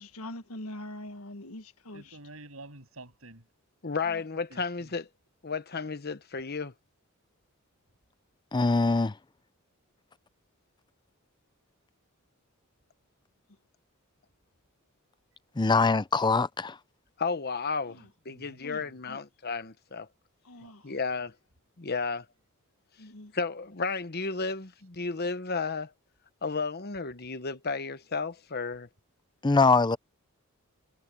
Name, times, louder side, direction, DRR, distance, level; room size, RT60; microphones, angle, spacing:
voice 1, 0.0-2.2 4.0-4.3 17.9-18.1 18.6-19.2 20.4-20.9 23.0-23.3, left 1 dB, 85° left, 1.5 m, -44 dB
voice 2, 1.9-3.5 4.5-4.9 17.9-19.0 20.6-21.0, right 2 dB, 75° right, 7.7 m, -50 dB
voice 3, 3.8-5.1 5.4-6.7 17.2-20.1 20.8-21.3 21.8-22.3 23.3-25.9 26.4-28.9, left 4 dB, 50° left, 1.1 m, -33 dB
voice 4, 8.5-9.1 15.6-16.8 29.4-30.0, left 3 dB, 20° left, 0.5 m, -23 dB
head